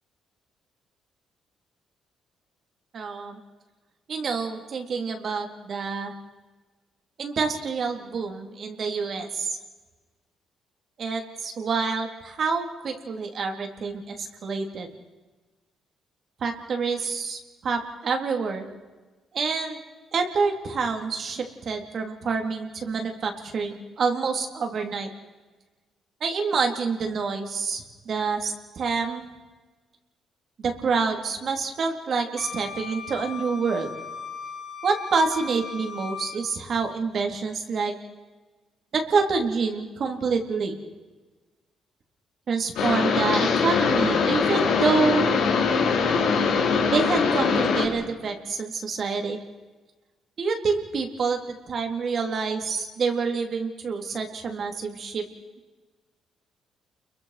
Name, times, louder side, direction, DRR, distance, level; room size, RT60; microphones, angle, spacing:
voice 1, 2.9-3.4 4.1-6.1 7.2-9.6 11.0-14.9 16.4-18.6 19.3-19.8 20.1-25.1 26.2-29.2 30.6-33.9 34.8-37.9 38.9-40.8 42.5-45.3 46.9-49.4 50.4-55.2, right 4 dB, 55° right, 4 dB, 3.8 m, -27 dB
Wind instrument woodwind instrument, 32.4-36.4, left 6 dB, 40° left, 3.3 m, -37 dB
sound 1, 42.8-47.8, left 5 dB, 85° left, 5.2 m, -22 dB
29.5 x 22.5 x 6.1 m, 1.3 s
cardioid pair, 90°, 0 cm